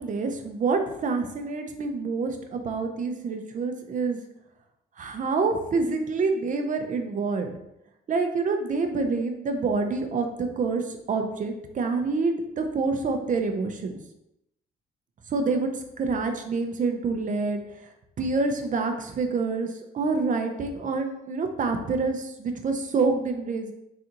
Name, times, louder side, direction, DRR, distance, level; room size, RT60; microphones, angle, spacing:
voice 1, 0.0-4.2 5.0-7.5 8.1-14.0 15.3-15.7 16.0-17.6 18.2-19.7 19.9-23.7, right 4 dB, 40° right, 5 dB, 0.5 m, -27 dB
3.8 x 2.4 x 2.8 m, 0.84 s
cardioid pair, 90°, 20 cm